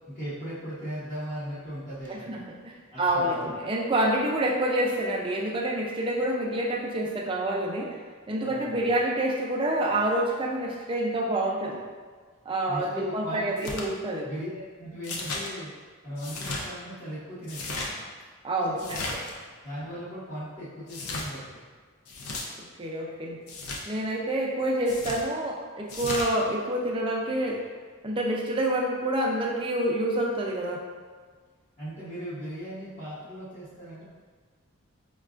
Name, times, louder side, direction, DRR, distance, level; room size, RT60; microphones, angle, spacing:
voice 1, 0.1-2.3 2.9-3.5 8.4-8.8 12.7-13.7 14.2-14.5 14.8-15.7 16.0-18.0 18.7-19.1 19.3-21.6 31.8-34.0, equal, 35° left, -14 dB, 0.9 m, -38 dB
voice 2, 2.1-8.0 8.3-11.8 12.5-14.3 18.4-19.2 22.6-23.4 23.9-27.7 28.0-30.9, right 1 dB, 25° right, -1 dB, 0.4 m, -27 dB
sound 1, 13.6-13.9 15.0-15.5 16.2-16.6 17.4-17.9 18.8-19.3 20.9-21.3 22.1-22.4 23.5-23.8 24.9-25.2 25.9-26.3, left 2 dB, 90° left, 0.6 m, -34 dB
5.1 x 2.3 x 2.4 m, 1.6 s
head